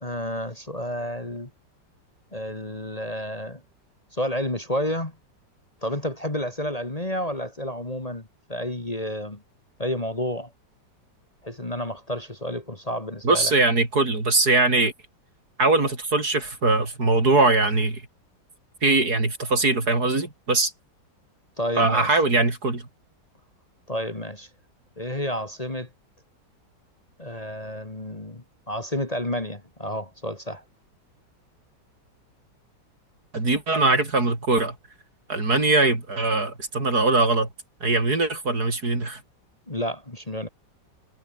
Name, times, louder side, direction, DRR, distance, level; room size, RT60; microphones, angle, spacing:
voice 1, 0.0-1.5 2.3-3.6 4.1-5.1 5.8-9.4 9.8-10.5 11.4-13.5 21.6-22.2 23.9-24.5 25.0-25.9 27.2-30.6 39.7-40.5, left 1 dB, 20° left, 2.7 m, -30 dB
voice 2, 13.2-14.9 15.6-18.0 18.8-20.7 21.8-22.8 33.3-34.7 35.3-37.5 37.8-39.2, right 3 dB, 60° right, 5.6 m, -21 dB
omnidirectional pair, 1.9 m